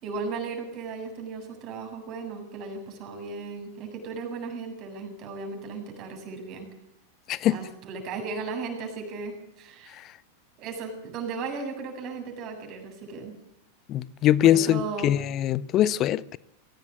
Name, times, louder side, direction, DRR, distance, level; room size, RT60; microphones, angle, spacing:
voice 1, 0.0-6.7 7.5-10.0 10.6-13.4 14.4-15.2, right 4 dB, 40° right, 7.7 m, -36 dB
voice 2, 13.9-16.4, left 12 dB, 35° left, 0.9 m, -22 dB
22.5 x 17.5 x 8.8 m
figure-of-eight pair, 90°, 0 cm